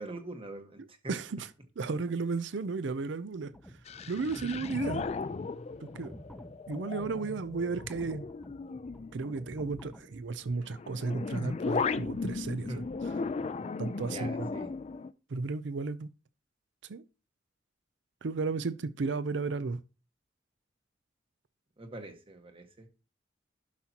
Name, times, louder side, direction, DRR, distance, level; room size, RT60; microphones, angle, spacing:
voice 1, 0.0-1.1 12.7-12.8 14.1-14.7 21.8-22.9, right 2 dB, 30° right, 1.4 m, -43 dB
voice 2, 1.1-1.5 1.8-3.5 4.1-5.0 5.8-6.1 6.7-8.3 9.1-12.8 13.8-14.5 15.3-16.1 16.9-17.0 18.2-19.8, right 4 dB, 70° right, 0.5 m, -34 dB
sound 1, 3.4-10.6, equal, 5° left, 0.7 m, -50 dB
sound 2, 3.9-9.7 10.6-15.1, left 4 dB, 35° left, 0.3 m, -36 dB
11.5 x 5.8 x 2.9 m
head